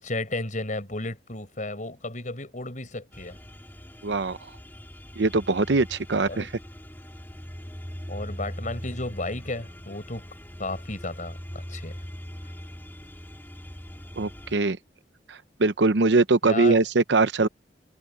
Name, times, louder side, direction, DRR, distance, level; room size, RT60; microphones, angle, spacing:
voice 1, 0.0-3.4 6.2-6.5 8.1-10.3 10.6-12.0 16.4-16.8, left 2 dB, 45° left, 6.2 m, -33 dB
sound 1, 3.1-14.6, equal, 10° left, 2.8 m, -41 dB
voice 2, 4.0-4.4 5.2-6.5 14.2-14.8 15.3-17.5, right 3 dB, 75° right, 0.8 m, -22 dB
head